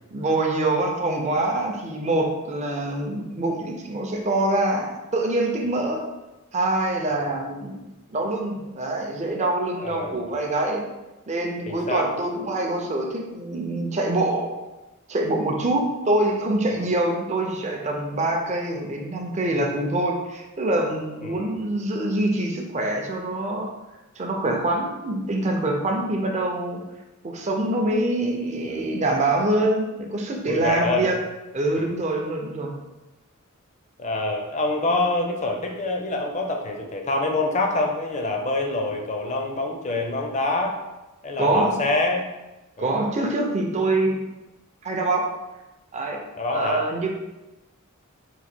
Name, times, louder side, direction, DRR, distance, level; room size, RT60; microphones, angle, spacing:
voice 1, 0.1-6.0 6.5-7.8 8.1-10.8 11.3-14.6 15.1-23.7 24.2-26.8 27.3-31.1 31.5-32.7 41.4-41.7 42.8-44.2 44.8-45.2 45.9-46.2 46.5-47.1, right 2 dB, 30° right, 1 dB, 0.5 m, -25 dB
voice 2, 9.8-10.2 11.7-12.1 16.7-16.9 21.2-21.6 30.5-31.1 31.8-32.0 34.0-40.8 41.2-42.3 42.8-42.9 46.4-46.9, left 2 dB, 35° left, 2 dB, 0.6 m, -26 dB
3.9 x 2.6 x 4.4 m, 1.0 s
head